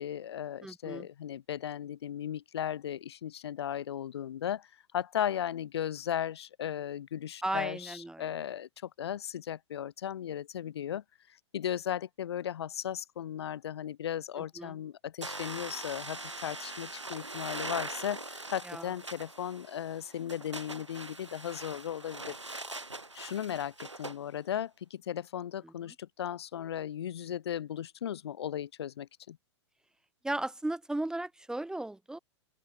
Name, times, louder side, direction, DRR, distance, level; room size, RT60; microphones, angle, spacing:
voice 1, 0.0-4.7 4.9-11.0 11.5-22.6 23.1-29.4, left 10 dB, 65° left, 2.0 m, -36 dB
voice 2, 0.6-1.1 7.4-8.4 14.4-14.8 18.6-18.9 25.6-25.9 30.2-32.2, right 1 dB, 5° right, 1.5 m, -36 dB
sound 1, 15.2-24.2, right 2 dB, 90° right, 4.6 m, -42 dB
open air
figure-of-eight pair, 100°, 15 cm